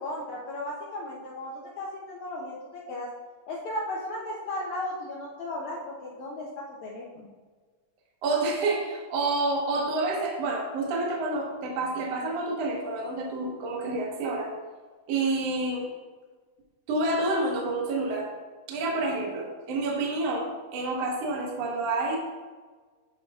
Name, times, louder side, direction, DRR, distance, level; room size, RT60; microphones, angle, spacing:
voice 1, 0.0-3.1 3.5-6.5 6.8-7.3, left 1 dB, 75° left, -3 dB, 1.7 m, -35 dB
voice 2, 8.2-14.5 15.1-15.8 16.9-18.3 18.7-22.2, right 2 dB, 65° right, -2 dB, 1.7 m, -28 dB
8.9 x 5.1 x 2.3 m, 1.4 s
omnidirectional pair, 4.0 m